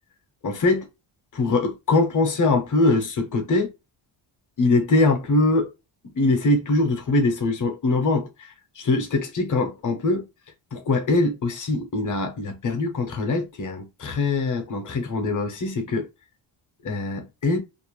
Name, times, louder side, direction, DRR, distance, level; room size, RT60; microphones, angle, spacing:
voice 1, 0.4-0.9 1.3-3.7 4.6-5.7 6.1-8.3 8.8-10.2 10.7-16.1 16.8-17.6, left 2 dB, 40° left, 0.8 m, -22 dB
2.6 x 2.1 x 3.0 m
cardioid pair, 135°, 49 cm